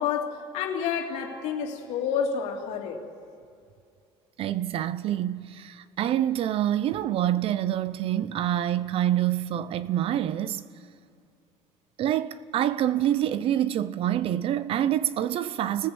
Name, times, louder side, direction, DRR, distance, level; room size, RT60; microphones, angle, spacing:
voice 1, 0.0-3.0, left 7 dB, 70° left, 2.9 m, -29 dB
voice 2, 4.4-10.6 12.0-15.9, right 11 dB, 50° right, 0.7 m, -26 dB
29.5 x 19.5 x 7.9 m
cardioid pair, 140°, 12 cm